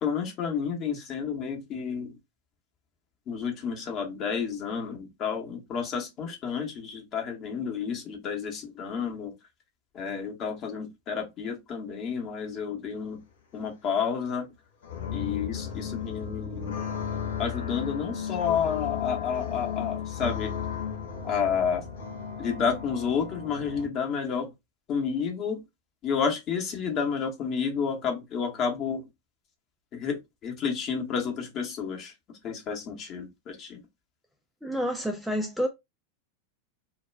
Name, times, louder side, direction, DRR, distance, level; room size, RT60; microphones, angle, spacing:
voice 1, 0.0-2.2 3.3-9.3 9.9-13.2 13.5-14.5 15.1-16.7 17.4-20.5 21.2-21.8 22.4-24.5 24.9-25.6 26.0-29.1 29.9-32.1 32.4-33.8, left 6 dB, 35° left, 0.8 m, -30 dB
sound 1, 14.8-23.9, left 8 dB, 60° left, 0.6 m, -34 dB
voice 2, 34.6-35.7, equal, ahead, 0.3 m, -28 dB
2.2 x 2.2 x 3.2 m
figure-of-eight pair, 90°, 0 cm